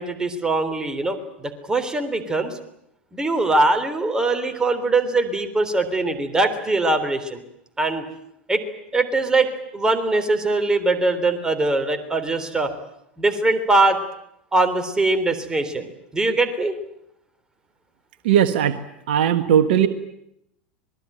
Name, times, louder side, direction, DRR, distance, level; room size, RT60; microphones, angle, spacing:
voice 1, 0.0-2.6 3.1-7.4 7.8-8.1 8.5-8.6 8.9-12.7 13.2-14.0 14.5-16.7, right 2 dB, 10° right, 6 dB, 3.5 m, -22 dB
voice 2, 18.2-18.8 19.1-19.9, right 9 dB, 60° right, 10 dB, 1.4 m, -18 dB
26.0 x 20.5 x 9.1 m, 0.80 s
figure-of-eight pair, 80°, 6 cm